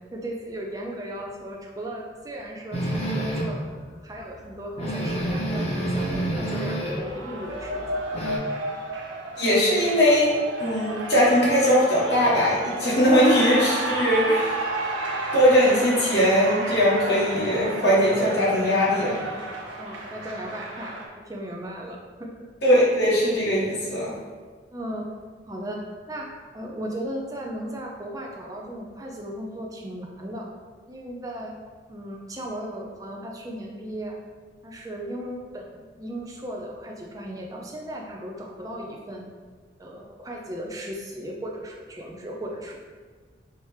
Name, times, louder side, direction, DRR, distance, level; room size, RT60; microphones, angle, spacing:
voice 1, 0.1-3.6 4.0-8.0 19.8-21.0 21.3-22.3 24.7-25.1 25.5-25.8 26.1-26.3 26.5-30.5 30.9-31.5 31.9-34.2 34.6-39.2 39.8-42.8, right 1 dB, 20° right, -1 dB, 0.5 m, -36 dB
sound 1, 2.7-3.6 4.1-4.2 4.5-4.6 4.8-7.1 7.4-8.4, right 1 dB, 35° left, 0.6 m, -28 dB
Cheering, 5.9-21.1, right 2 dB, 85° right, 0.7 m, -32 dB
voice 2, 9.4-10.3 10.6-14.5 15.3-19.2 22.6-24.1, equal, 60° left, -8 dB, 1.4 m, -20 dB
4.5 x 2.9 x 3.2 m, 1.5 s
head